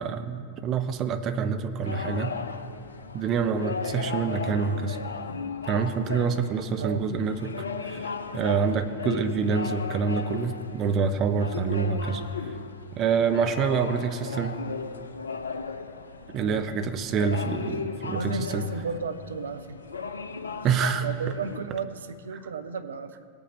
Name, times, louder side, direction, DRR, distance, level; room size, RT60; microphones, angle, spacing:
voice 1, 0.0-2.4 3.1-5.0 5.7-7.5 7.9-12.2 12.9-14.6 16.3-18.7 20.6-21.1, right 6 dB, 35° right, 8 dB, 0.7 m, -26 dB
sound 1, 1.8-21.6, left 5 dB, 75° left, 0.5 m, -36 dB
voice 2, 6.8-7.3 16.4-16.6 18.1-19.8 21.0-23.3, right 5 dB, 65° right, 10 dB, 0.6 m, -34 dB
18.0 x 8.6 x 3.1 m, 2.4 s
figure-of-eight pair, 90°, 0 cm